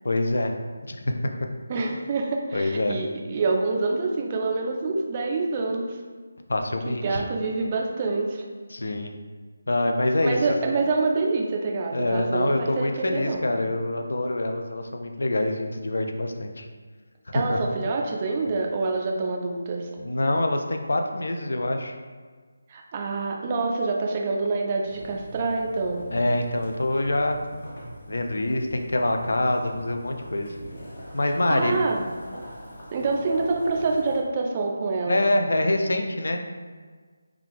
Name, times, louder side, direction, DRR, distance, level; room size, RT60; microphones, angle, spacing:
voice 1, 0.0-0.5 0.9-1.2 2.5-2.9 6.5-7.2 8.7-9.1 9.7-10.4 11.9-16.7 17.3-17.6 20.0-22.0 26.1-27.4 28.1-30.5 31.1-31.7 35.1-36.4, left 1 dB, 60° left, 4 dB, 0.3 m, -25 dB
voice 2, 1.7-6.0 6.9-8.4 10.2-13.4 17.3-19.9 22.7-26.0 31.5-32.1 32.9-35.2, right 3 dB, 25° right, 1 dB, 0.4 m, -26 dB
Boiling, 24.8-34.2, equal, 40° left, 1.2 m, -42 dB
3.4 x 2.3 x 3.5 m, 1.5 s
figure-of-eight pair, 155°, 0 cm